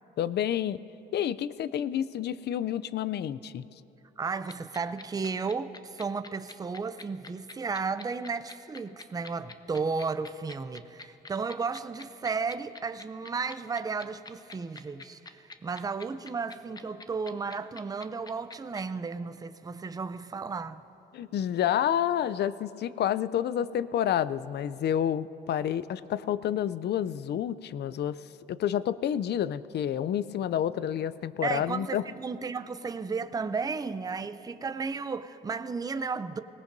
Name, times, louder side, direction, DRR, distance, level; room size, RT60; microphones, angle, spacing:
voice 1, 0.2-0.8 1.1-3.7 21.1-32.0, left 10 dB, 60° left, 0.4 m, -29 dB
voice 2, 4.2-20.8 31.4-36.4, right 4 dB, 20° right, 0.5 m, -34 dB
sound 1, 4.5-18.8, left 3 dB, 20° left, 0.7 m, -45 dB
20.0 x 18.0 x 2.6 m
cardioid pair, 90°, 20 cm